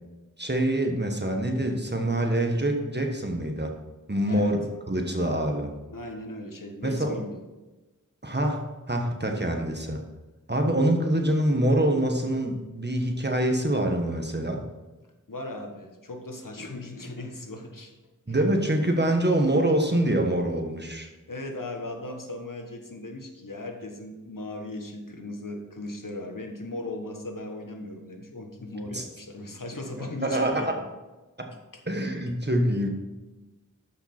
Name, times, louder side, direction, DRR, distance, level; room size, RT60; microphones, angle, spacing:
voice 1, 0.4-3.7 4.1-5.7 6.8-7.2 8.2-8.6 8.9-10.0 10.5-14.6 18.3-21.1 28.9-29.0 30.0-30.8 31.4-31.5 31.9-32.9, right 1 dB, 30° right, 3 dB, 1.5 m, -25 dB
voice 2, 5.9-7.4 15.3-17.9 18.3-18.4 21.3-30.7 31.7-31.8, left 2 dB, 80° left, 3 dB, 1.3 m, -37 dB
13.0 x 5.8 x 4.4 m, 1.1 s
wide cardioid pair, 45°, 32 cm